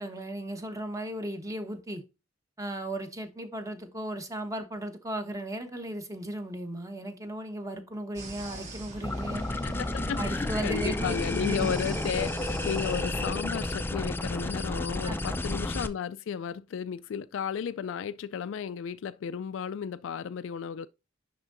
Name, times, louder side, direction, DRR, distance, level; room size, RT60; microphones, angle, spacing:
voice 1, 0.0-2.0 2.6-9.4 10.2-11.7 15.0-15.4, right 1 dB, 15° right, 1.1 m, -36 dB
sound 1, 8.1-13.4, right 2 dB, 40° right, 1.9 m, -42 dB
sound 2, 9.0-15.9, left 2 dB, 10° left, 0.4 m, -31 dB
voice 2, 9.6-20.9, left 7 dB, 75° left, 0.3 m, -34 dB
10.5 x 3.6 x 2.6 m
head